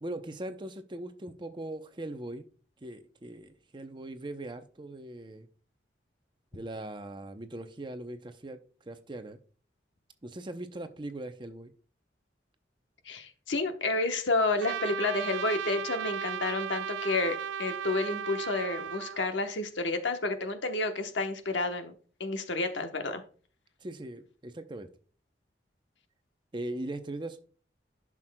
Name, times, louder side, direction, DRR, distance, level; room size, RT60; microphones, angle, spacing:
voice 1, 0.0-2.5 2.8-5.5 6.5-8.6 8.9-9.4 10.2-11.7 23.8-24.9 26.5-27.4, right 1 dB, 25° right, 8 dB, 0.6 m, -40 dB
voice 2, 13.0-21.9 22.2-23.2, left 3 dB, 80° left, 7 dB, 1.0 m, -30 dB
Trumpet, 14.6-19.3, right 8 dB, 85° right, 0.3 m, -36 dB
11.0 x 6.1 x 2.2 m, 0.41 s
head